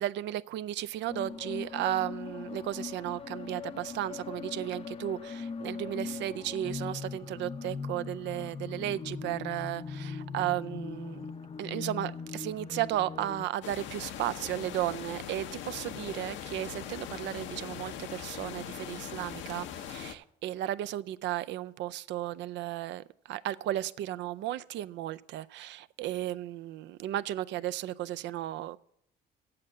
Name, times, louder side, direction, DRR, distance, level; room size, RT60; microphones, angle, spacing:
voice 1, 0.0-11.3 11.6-28.8, right 13 dB, 65° right, 0.4 m, -34 dB
sound 1, 1.1-13.5, left 5 dB, 30° left, 0.6 m, -40 dB
sound 2, 13.6-20.1, left 9 dB, 70° left, 0.7 m, -41 dB
7.7 x 7.4 x 7.7 m
supercardioid pair, 70°, 20 cm